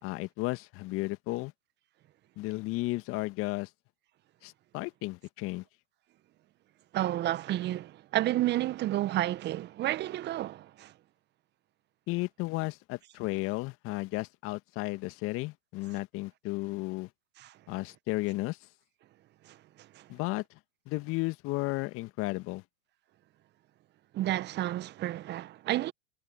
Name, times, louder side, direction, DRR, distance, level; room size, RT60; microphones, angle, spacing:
voice 1, 0.0-1.5 2.4-3.7 4.4-5.6 12.1-17.1 17.7-18.7 20.1-20.6 20.9-22.6, left 21 dB, 40° left, 2.1 m, -34 dB
voice 2, 6.9-10.9 17.4-17.6 19.4-20.1 24.1-25.9, right 14 dB, 30° right, 1.5 m, -31 dB
hypercardioid pair, 100°, 34 cm